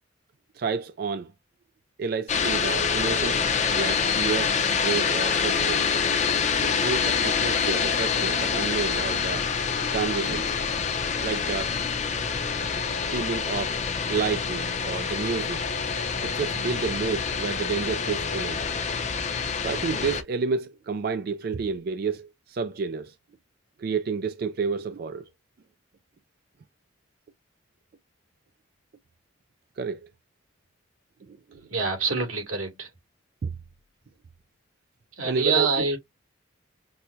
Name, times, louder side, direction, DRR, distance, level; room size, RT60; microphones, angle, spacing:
voice 1, 0.5-1.3 2.0-6.0 6.6-9.5 9.9-10.6 11.2-11.7 12.8-13.8 14.1-15.6 16.2-18.6 19.6-23.2 23.8-25.2 29.8-30.1 31.3-31.4 33.4-33.5 35.2-35.9, right 5 dB, 45° right, 0.3 m, -30 dB
sound 1, 2.3-20.2, left 6 dB, 35° left, 0.6 m, -26 dB
voice 2, 31.5-32.9 35.2-36.0, right 4 dB, 85° right, 2.4 m, -26 dB
5.9 x 2.1 x 2.6 m
head